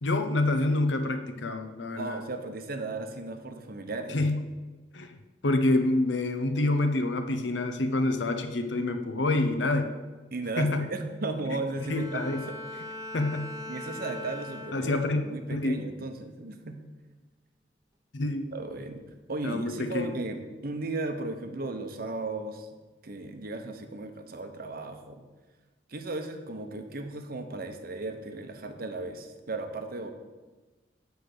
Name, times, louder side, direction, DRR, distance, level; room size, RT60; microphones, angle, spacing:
voice 1, 0.0-2.2 4.1-4.4 4.9-5.1 5.4-9.9 10.6-10.8 11.9-12.5 13.1-13.5 14.7-15.2 15.5-15.8 18.1-18.5 19.4-20.1, left 2 dB, 75° left, 8 dB, 0.8 m, -27 dB
voice 2, 2.0-4.2 10.3-12.6 13.7-16.8 18.5-22.7 23.0-25.3 25.9-30.1, right 2 dB, 55° right, 7 dB, 0.9 m, -36 dB
Bowed string instrument, 11.7-15.3 15.8-16.2, left 1 dB, 20° right, 0.8 m, -41 dB
8.0 x 5.0 x 6.6 m, 1.2 s
head